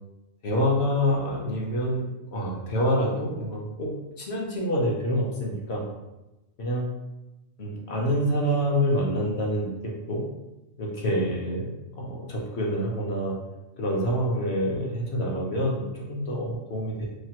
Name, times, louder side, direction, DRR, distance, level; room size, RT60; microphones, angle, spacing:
voice 1, 0.4-2.0 2.3-5.8 6.6-6.9 7.6-10.2 10.8-11.7 12.0-13.4 13.8-17.1, equal, 60° left, -3 dB, 0.9 m, -27 dB
3.1 x 2.1 x 2.8 m, 1.0 s
omnidirectional pair, 1.3 m